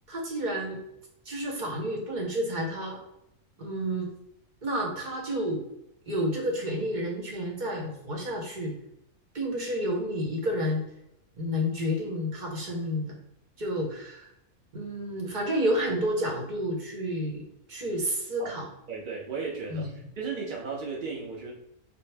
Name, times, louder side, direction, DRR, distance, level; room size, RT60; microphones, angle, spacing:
voice 1, 0.1-0.8 1.3-3.0 3.6-4.1 4.6-5.6 6.1-8.7 9.3-10.8 11.4-13.2 13.6-14.3 14.7-18.7 19.7-19.9, equal, 40° right, 0 dB, 0.8 m, -30 dB
voice 2, 18.9-19.9 20.2-21.5, right 5 dB, 65° right, -2 dB, 0.5 m, -35 dB
4.3 x 2.1 x 3.3 m, 0.80 s
omnidirectional pair, 1.6 m